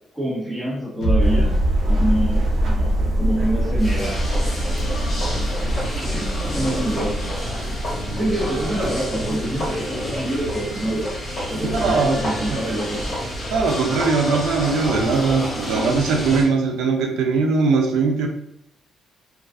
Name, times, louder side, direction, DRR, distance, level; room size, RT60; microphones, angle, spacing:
voice 1, 0.1-4.2 5.4-7.1 7.5-7.8 8.1-11.1 11.5-13.2, right 1 dB, 10° right, -5 dB, 1.0 m, -26 dB
sound 1, 1.0-12.3 12.6-12.7, right 1 dB, 70° left, 0.6 m, -24 dB
sound 2, 1.2-6.8, equal, 65° right, 0.9 m, -35 dB
sound 3, 3.8-16.5, equal, 40° left, 1.1 m, -29 dB
voice 2, 11.6-12.2 12.7-12.8 13.5-18.3, right 4 dB, 85° right, 3 dB, 0.4 m, -20 dB
2.3 x 2.3 x 2.3 m, 0.76 s
cardioid pair, 90°, 0 cm